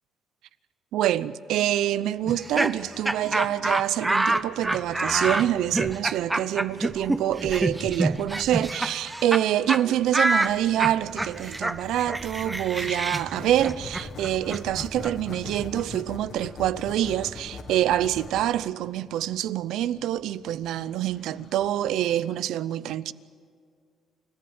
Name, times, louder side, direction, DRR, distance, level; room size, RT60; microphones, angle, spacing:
voice 1, 0.9-23.1, right 12 dB, 80° right, 0.6 m, -26 dB
Laughter, 2.3-9.4 9.7-9.8 10.1-15.9, right 2 dB, 10° right, 0.6 m, -27 dB
sound 1, 13.4-21.9, left 4 dB, 45° left, 2.0 m, -42 dB
29.0 x 14.5 x 8.8 m
cardioid pair, 180°, 0 cm